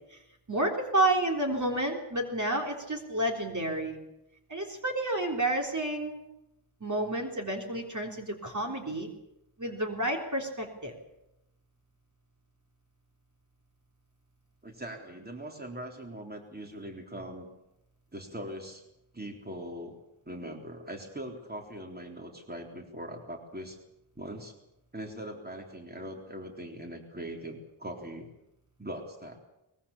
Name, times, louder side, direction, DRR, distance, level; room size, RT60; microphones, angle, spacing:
voice 1, 0.5-4.0 4.5-6.2 6.8-9.1 9.6-10.9, right 1 dB, 35° right, 2 dB, 3.7 m, -30 dB
voice 2, 14.6-17.5 18.1-18.9 19.1-20.0 20.3-23.8 24.2-24.5 24.9-28.3 28.8-29.4, right 1 dB, 20° right, 2 dB, 3.8 m, -41 dB
23.0 x 21.5 x 7.3 m, 0.87 s
wide cardioid pair, 100°, 49 cm